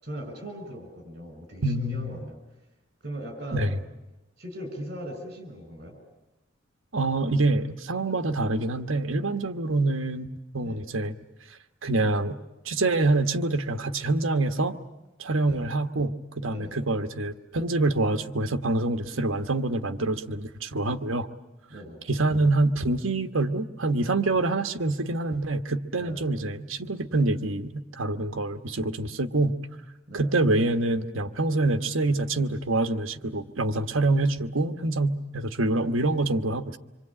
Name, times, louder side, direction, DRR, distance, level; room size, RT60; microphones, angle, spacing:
voice 1, 0.0-2.4 3.0-3.7 4.4-6.0 10.6-10.8 15.4-15.7 16.5-16.8 21.7-22.0 26.0-26.2 30.1-30.3, equal, 45° right, 5 dB, 6.1 m, -39 dB
voice 2, 1.6-2.2 3.5-3.7 6.9-11.2 11.8-12.4 12.6-14.8 15.2-21.3 22.1-29.6 30.1-36.8, right 2 dB, 80° right, 8 dB, 1.3 m, -26 dB
26.5 x 24.0 x 8.7 m, 0.99 s
head